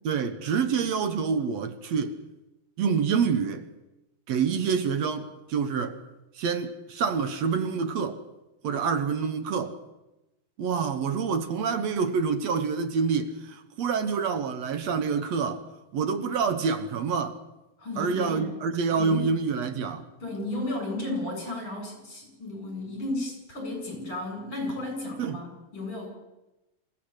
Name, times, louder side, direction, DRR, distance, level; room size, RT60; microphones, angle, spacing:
voice 1, 0.1-2.2 2.8-3.6 4.3-6.0 6.4-8.2 8.6-9.8 10.6-15.7 15.9-17.4 18.0-20.1 25.2-25.4, right 5 dB, 65° right, 2.4 m, -27 dB
voice 2, 17.8-18.5 18.9-19.4 20.2-26.1, left 2 dB, 45° left, 8.8 m, -34 dB
27.0 x 15.5 x 8.2 m
omnidirectional pair, 3.4 m